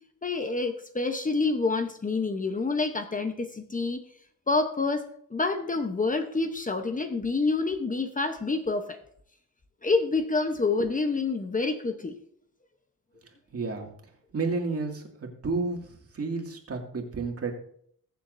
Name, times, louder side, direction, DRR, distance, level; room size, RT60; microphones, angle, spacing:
voice 1, 0.2-4.0 4.5-5.0 5.3-9.0 9.8-12.1, left 3 dB, 25° left, 6 dB, 0.9 m, -27 dB
voice 2, 13.5-13.9 14.3-15.8 16.1-17.5, right 3 dB, 45° right, 1 dB, 2.3 m, -31 dB
21.5 x 7.3 x 2.7 m, 0.65 s
wide cardioid pair, 120°, 33 cm